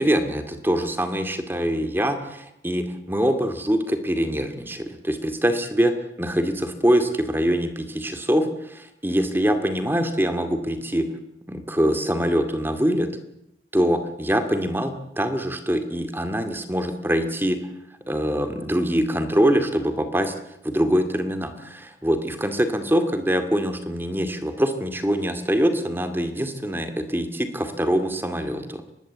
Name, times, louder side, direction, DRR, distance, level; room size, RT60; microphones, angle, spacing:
voice 1, 0.0-5.9 6.2-11.1 11.5-13.1 13.7-17.6 18.1-20.3 20.7-28.8, equal, 10° right, 8 dB, 2.2 m, -24 dB
24.0 x 20.0 x 8.2 m, 0.80 s
head